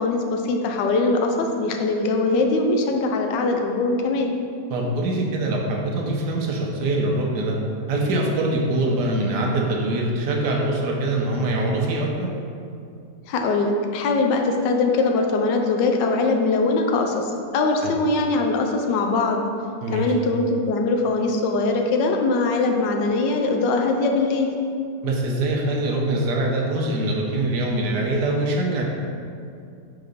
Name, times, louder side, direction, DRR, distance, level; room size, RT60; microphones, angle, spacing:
voice 1, 0.0-4.3 13.3-19.4 19.9-24.5, left 3 dB, 85° left, 3 dB, 1.3 m, -22 dB
voice 2, 4.7-7.6 7.9-12.3 17.8-17.9 19.8-20.1 25.0-28.8, right 2 dB, 75° right, -1 dB, 1.4 m, -23 dB
4.7 x 3.9 x 5.3 m, 2.5 s
omnidirectional pair, 1.9 m